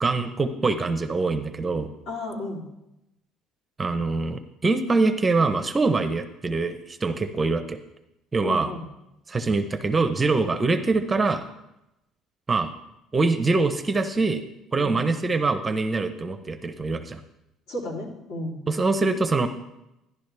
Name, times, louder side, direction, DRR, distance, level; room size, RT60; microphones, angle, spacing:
voice 1, 0.0-1.9 3.8-7.8 8.3-8.7 9.3-11.4 12.5-12.7 13.1-14.4 14.7-17.2 18.7-19.5, right 3 dB, 15° right, 9 dB, 0.6 m, -24 dB
voice 2, 2.1-2.6 8.4-8.8 14.8-15.0 17.7-18.6, left 1 dB, 75° left, -2 dB, 3.0 m, -33 dB
12.0 x 11.0 x 3.3 m, 0.88 s
cardioid pair, 155°, 0 cm